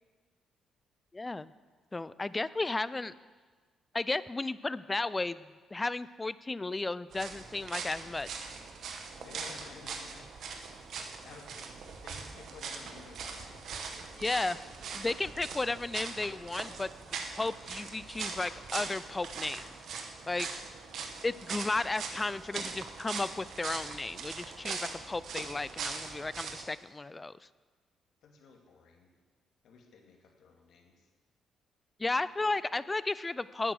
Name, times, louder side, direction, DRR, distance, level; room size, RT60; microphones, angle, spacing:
voice 1, 1.1-1.5 1.9-3.1 3.9-8.5 14.2-14.6 14.9-19.6 20.3-20.5 21.2-27.4 32.0-33.7, left 2 dB, 20° left, 17 dB, 0.4 m, -34 dB
sound 1, 7.1-26.7, right 5 dB, 65° right, 1.2 m, -41 dB
voice 2, 9.2-10.3 11.2-15.7 28.2-29.1 29.6-31.1 32.4-32.5, left 4 dB, 70° left, 2 dB, 2.0 m, -54 dB
9.3 x 8.9 x 6.4 m, 1.4 s
cardioid pair, 90°, 0 cm